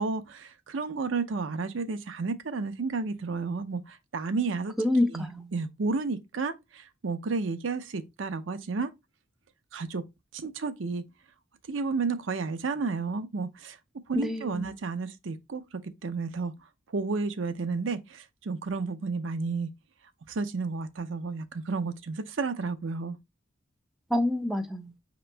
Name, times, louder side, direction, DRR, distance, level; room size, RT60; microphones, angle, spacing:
voice 1, 0.0-4.7 5.1-8.9 9.7-10.0 10.3-11.0 11.7-13.8 14.1-15.6 16.0-16.5 16.9-19.7 20.3-23.2, right 4 dB, 75° right, 0.6 m, -32 dB
voice 2, 4.8-5.5 14.1-14.7 24.1-24.9, left 1 dB, ahead, 0.4 m, -27 dB
5.1 x 2.9 x 3.3 m
head